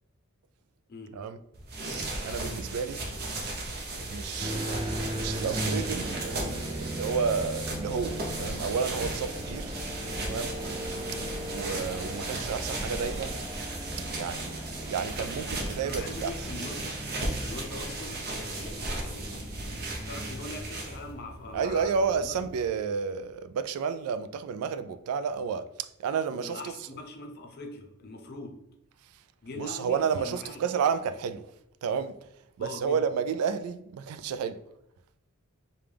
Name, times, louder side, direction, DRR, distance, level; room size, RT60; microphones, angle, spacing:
voice 1, 0.9-1.2 11.0-11.3 15.8-17.1 17.4-22.3 26.3-28.7 29.4-30.6 32.6-33.0, left 3 dB, 45° left, 0.6 m, -43 dB
sound 1, 1.5-21.1, right 2 dB, 45° right, 0.8 m, -36 dB
voice 2, 2.2-3.0 4.1-9.7 10.2-10.6 11.5-13.4 14.1-16.3 21.5-26.7 29.6-31.5 31.8-32.2 32.6-34.6, right 6 dB, 85° right, 0.3 m, -31 dB
sound 2, 4.4-22.7, equal, 20° right, 0.5 m, -38 dB
5.1 x 2.3 x 3.3 m
head